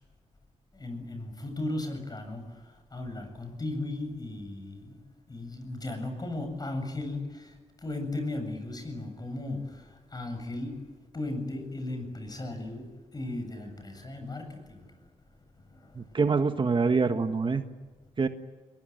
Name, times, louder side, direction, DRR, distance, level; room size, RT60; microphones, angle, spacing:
voice 1, 0.7-15.1 15.5-16.2, left 2 dB, 30° left, 7 dB, 7.8 m, -37 dB
voice 2, 16.0-17.6 18.2-18.3, right 4 dB, 40° right, 8 dB, 1.5 m, -25 dB
22.0 x 22.0 x 10.0 m, 1.3 s
cardioid pair, 75°, 13 cm